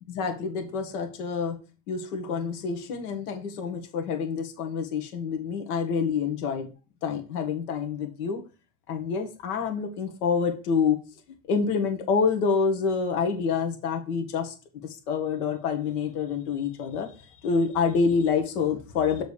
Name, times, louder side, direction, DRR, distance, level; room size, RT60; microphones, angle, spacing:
voice 1, 0.1-1.6 1.9-6.7 7.0-8.4 8.9-11.0 11.5-14.5 14.8-17.1 17.4-19.2, left 5 dB, 80° left, 4 dB, 1.8 m, -27 dB
6.9 x 3.8 x 5.0 m, 0.32 s
supercardioid pair, 100°, 44 cm